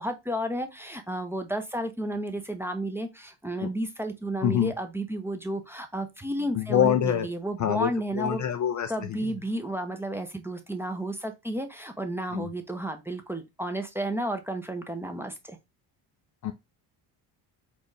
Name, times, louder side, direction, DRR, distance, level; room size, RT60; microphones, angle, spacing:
voice 1, 0.0-8.4 8.9-15.6, right 1 dB, 5° right, 0.7 m, -32 dB
voice 2, 4.4-4.7 6.5-7.3 7.6-9.3 12.3-12.5 16.4-16.5, left 10 dB, 40° left, 0.4 m, -26 dB
4.3 x 2.4 x 3.2 m
supercardioid pair, 70°, 49 cm